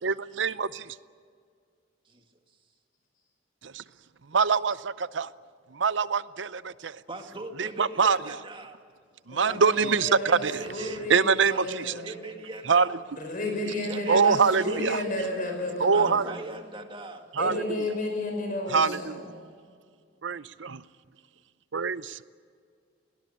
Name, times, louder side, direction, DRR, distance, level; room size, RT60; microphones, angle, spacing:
voice 1, 0.0-1.0 3.6-3.8 4.2-5.3 5.7-7.0 7.6-8.4 9.3-12.0 12.6-13.0 14.1-15.0 15.8-16.3 17.3-18.0 18.7-19.2 20.2-20.8 21.7-22.2, right 5 dB, 70° right, 16 dB, 0.7 m, -25 dB
voice 2, 7.1-8.8 9.5-11.1 11.5-11.7 12.0-13.0 13.6-14.8 15.9-17.3, right 2 dB, 25° right, 5 dB, 2.0 m, -40 dB
voice 3, 10.0-12.0 13.2-16.2 17.4-19.2, left 1 dB, 45° left, 3 dB, 5.6 m, -32 dB
21.5 x 18.5 x 8.6 m, 2.1 s
head